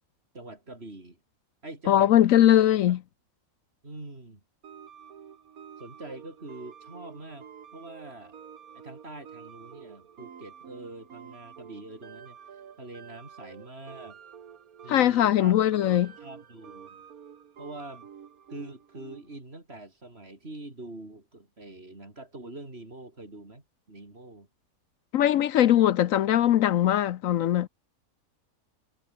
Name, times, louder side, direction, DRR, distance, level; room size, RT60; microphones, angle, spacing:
voice 1, 0.3-1.2 1.6-2.3 2.9-3.0 3.8-4.4 5.8-8.4 8.7-12.4 12.8-14.2 14.8-15.6 16.2-17.0 17.6-18.1 18.5-24.5, right 2 dB, 45° right, 4.9 m, -44 dB
voice 2, 1.9-3.0 14.9-16.1 25.1-27.7, left 12 dB, 70° left, 1.0 m, -21 dB
sound 1, 4.6-19.4, right 8 dB, 80° right, 1.7 m, -49 dB
omnidirectional pair, 1.5 m